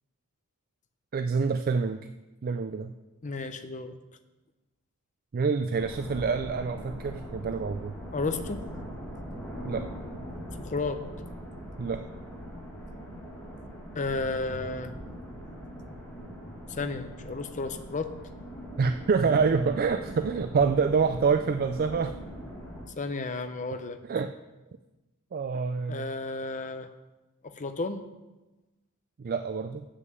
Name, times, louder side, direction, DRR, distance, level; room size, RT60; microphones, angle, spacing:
voice 1, 1.1-2.0 2.4-2.9 5.3-7.9 9.6-9.8 11.8-12.0 18.8-22.1 24.1-24.3 25.3-26.1 29.2-29.8, right 5 dB, 40° right, 8 dB, 0.3 m, -26 dB
voice 2, 3.2-4.0 8.1-8.6 10.6-11.0 13.9-14.9 16.7-18.1 23.0-24.0 25.9-26.9 27.4-28.0, left 3 dB, 35° left, 8 dB, 0.6 m, -32 dB
sound 1, 5.7-22.9, equal, 10° left, 2.1 m, -41 dB
7.7 x 6.3 x 7.5 m, 1.1 s
head